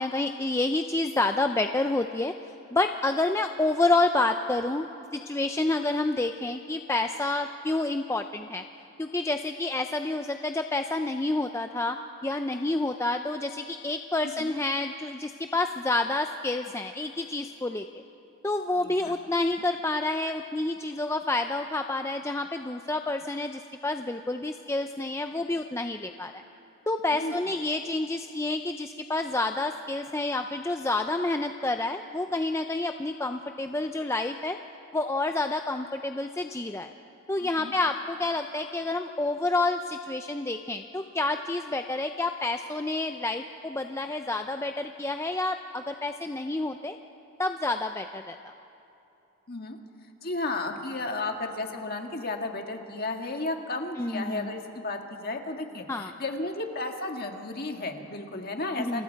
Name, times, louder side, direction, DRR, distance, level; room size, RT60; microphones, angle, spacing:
voice 1, 0.0-2.3 2.7-8.6 9.0-12.0 12.2-18.0 18.4-26.4 26.9-34.6 34.9-36.9 37.3-47.0 47.4-48.4 54.0-54.5 55.9-56.1 58.8-59.0, left 2 dB, 10° left, 6 dB, 0.4 m, -29 dB
voice 2, 18.8-19.2 27.1-27.3 37.4-37.7 49.5-49.8 50.2-59.0, left 2 dB, 45° left, 3 dB, 1.8 m, -33 dB
28.5 x 28.0 x 4.6 m, 2.9 s
head